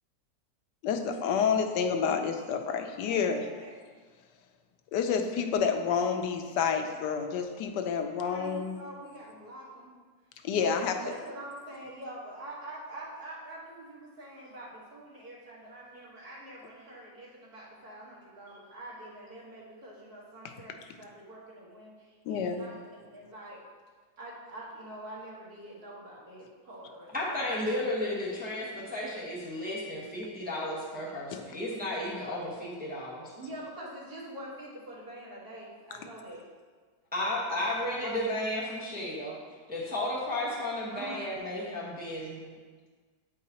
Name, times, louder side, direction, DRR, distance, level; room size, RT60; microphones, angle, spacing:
voice 1, 0.8-3.5 4.9-8.8 10.4-11.0 22.3-22.6 31.3-31.4, left 6 dB, 80° left, 6 dB, 1.2 m, -29 dB
voice 2, 3.1-3.8 8.2-9.9 10.4-23.6 24.2-27.3 28.3-28.4 28.7-28.8 33.4-36.5 38.0-38.3 40.9-41.3, right 1 dB, 65° right, -5 dB, 1.9 m, -45 dB
voice 3, 27.1-33.3 37.1-39.4 39.7-42.6, left 1 dB, 5° right, -6 dB, 0.8 m, -33 dB
8.3 x 4.7 x 2.8 m, 1.5 s
omnidirectional pair, 1.8 m